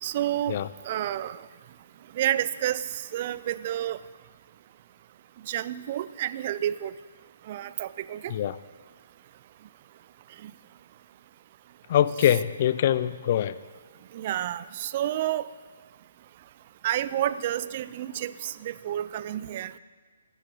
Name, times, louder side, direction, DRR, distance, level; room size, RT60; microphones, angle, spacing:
voice 1, 0.0-0.6 0.9-1.4 2.1-4.0 5.5-6.9 7.5-8.3 10.4-10.5 14.1-15.5 16.8-19.7, right 12 dB, 40° right, 17 dB, 0.5 m, -30 dB
voice 2, 11.9-13.5, left 11 dB, 45° left, 16 dB, 0.5 m, -23 dB
15.0 x 12.5 x 4.9 m, 1.5 s
figure-of-eight pair, 135°, 0 cm